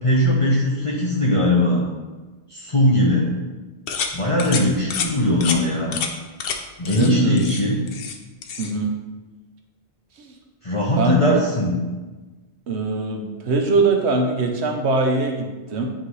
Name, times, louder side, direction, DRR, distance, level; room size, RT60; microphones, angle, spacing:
voice 1, 0.0-1.8 2.5-3.3 4.1-5.9 6.8-7.8 10.6-11.8, left 1 dB, 30° left, -6 dB, 1.0 m, -19 dB
sound 1, 3.9-4.1 4.4-4.6 4.9-5.1 5.4-5.6 5.9-6.1 6.4-6.6 6.8-7.1 7.4-8.2 8.4-8.7, left 6 dB, 60° left, 0.8 m, -27 dB
voice 2, 6.8-7.4 8.6-8.9 10.2-10.3 11.0-11.4 12.7-15.9, right 3 dB, 75° right, 3 dB, 1.1 m, -22 dB
9.5 x 3.8 x 3.1 m, 1.2 s
omnidirectional pair, 1.1 m